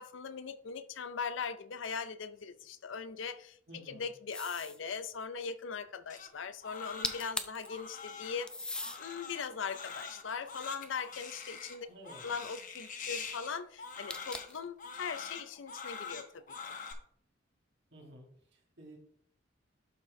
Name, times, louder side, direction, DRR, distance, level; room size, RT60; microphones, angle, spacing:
voice 1, 0.0-11.9 12.2-16.6, left 6 dB, 70° left, 0.5 m, -40 dB
voice 2, 3.7-4.1 11.9-12.3 17.9-18.3 18.8-19.0, right 1 dB, 60° right, 2.3 m, -51 dB
sound 1, 4.3-4.8 6.8-6.9 7.0-7.7 8.5-9.0 9.7-11.1 14.1-14.7, left 2 dB, 5° left, 0.4 m, -39 dB
Crying sobbing, 6.1-16.9, left 5 dB, 40° left, 1.0 m, -45 dB
11.5 x 4.4 x 3.2 m
head